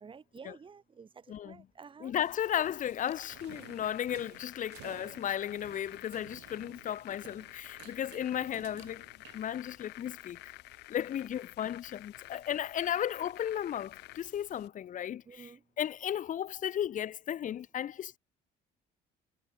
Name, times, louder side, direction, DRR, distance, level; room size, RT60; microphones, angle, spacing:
voice 1, 0.0-1.1 1.4-2.1 15.3-15.6, right 6 dB, 30° right, 2.4 m, -51 dB
voice 2, 1.3-1.7 2.0-9.0 9.3-10.5 10.9-15.5 15.8-18.2, left 10 dB, 50° left, 1.2 m, -35 dB
sound 1, 2.1-14.7, left 19 dB, 85° left, 5.4 m, -51 dB
sound 2, 3.3-10.0, right 18 dB, 85° right, 5.6 m, -55 dB
cardioid pair, 110°, 17 cm